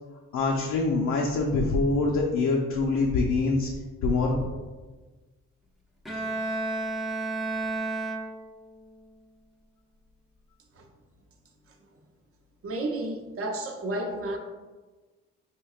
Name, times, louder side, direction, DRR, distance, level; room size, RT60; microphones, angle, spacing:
voice 1, 0.3-3.7 4.0-4.5, left 3 dB, 75° left, 0 dB, 0.5 m, -24 dB
Bowed string instrument, 6.0-8.8, right 2 dB, ahead, 0.4 m, -31 dB
voice 2, 12.6-14.4, right 1 dB, 50° right, 3 dB, 0.7 m, -31 dB
4.5 x 2.7 x 2.4 m, 1.3 s
cardioid pair, 90°, 30 cm